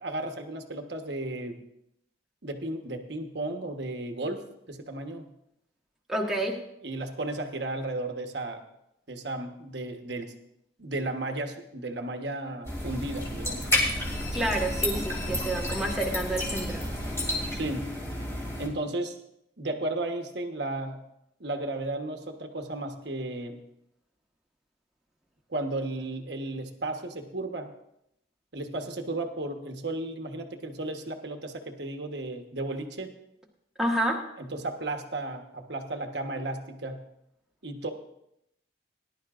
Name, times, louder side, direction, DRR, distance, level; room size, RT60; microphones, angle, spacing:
voice 1, 0.0-1.6 2.4-5.3 6.8-8.6 9.1-10.3 10.8-13.7 15.3-15.5 17.5-17.9 18.6-19.2 19.6-21.0 21.4-23.6 25.5-27.7 28.5-33.1 34.4-37.0 37.6-37.9, right 2 dB, 60° right, 5 dB, 1.2 m, -34 dB
voice 2, 6.1-6.6 14.3-16.8 33.8-34.2, right 1 dB, 5° right, -1 dB, 1.3 m, -29 dB
sound 1, 12.7-18.7, left 1 dB, 15° left, 2.6 m, -31 dB
19.5 x 11.0 x 2.5 m, 0.79 s
head